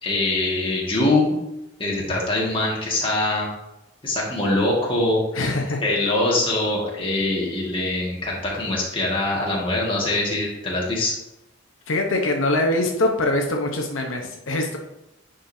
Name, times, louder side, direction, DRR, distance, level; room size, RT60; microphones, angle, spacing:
voice 1, 0.0-1.4 1.8-3.5 4.0-5.2 5.8-11.1, left 2 dB, 25° left, -4 dB, 1.9 m, -23 dB
voice 2, 5.3-5.8 11.9-14.8, left 2 dB, 85° left, 2 dB, 0.9 m, -23 dB
10.0 x 5.3 x 2.8 m, 0.91 s
head